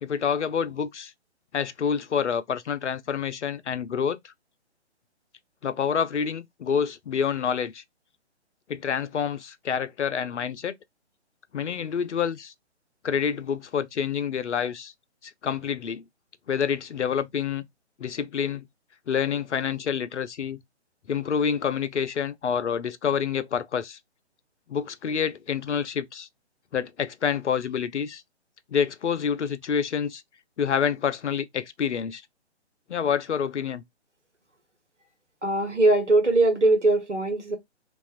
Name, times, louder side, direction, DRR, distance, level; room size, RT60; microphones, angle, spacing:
voice 1, 0.0-1.1 1.5-4.3 5.6-7.8 8.7-10.7 11.5-12.5 13.0-14.9 15.4-16.0 16.5-17.7 18.0-18.7 19.1-20.6 21.1-24.0 24.7-26.3 26.7-28.2 28.7-30.2 30.6-32.2 32.9-33.8, left 7 dB, 80° left, 0.5 m, -27 dB
voice 2, 35.4-37.6, right 2 dB, 85° right, 1.1 m, -21 dB
2.8 x 2.4 x 2.3 m
figure-of-eight pair, 135°, 35 cm